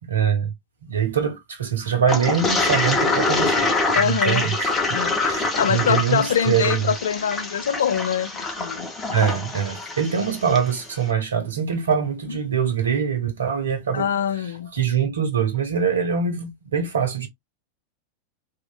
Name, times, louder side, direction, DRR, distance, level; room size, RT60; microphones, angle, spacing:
voice 1, 0.0-0.5 0.8-6.9 9.1-17.3, right 7 dB, 70° right, 0.9 m, -24 dB
Toilet flush, 2.1-10.7, left 3 dB, 20° left, 0.9 m, -25 dB
voice 2, 3.9-4.5 4.9-5.1 5.5-8.9 13.9-14.7, left 8 dB, 65° left, 0.3 m, -24 dB
3.1 x 2.7 x 2.2 m
figure-of-eight pair, 90°, 0 cm